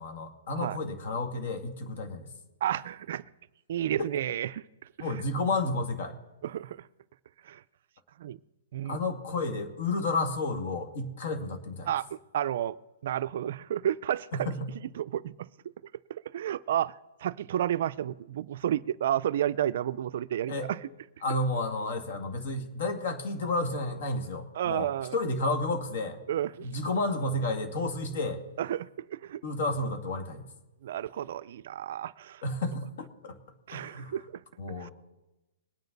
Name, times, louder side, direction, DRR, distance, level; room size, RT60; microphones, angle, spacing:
voice 1, 0.0-2.3 4.0-4.1 5.0-6.2 8.9-11.9 14.5-14.7 20.5-20.7 21.2-26.2 26.6-28.4 29.4-30.5 32.4-33.4 33.7-34.2 34.6-34.9, left 2 dB, 55° left, 2.2 m, -31 dB
voice 2, 2.6-3.3 3.7-4.6 6.4-6.9 7.4-7.6 8.2-8.4 8.7-9.0 11.9-12.8 13.0-14.5 15.0-15.5 16.1-16.9 17.2-20.8 24.5-25.2 26.3-26.7 28.6-29.4 30.8-32.4 33.7-34.4 34.8-34.9, right 11 dB, 50° right, 0.4 m, -31 dB
22.0 x 9.3 x 4.0 m
hypercardioid pair, 170°, 0 cm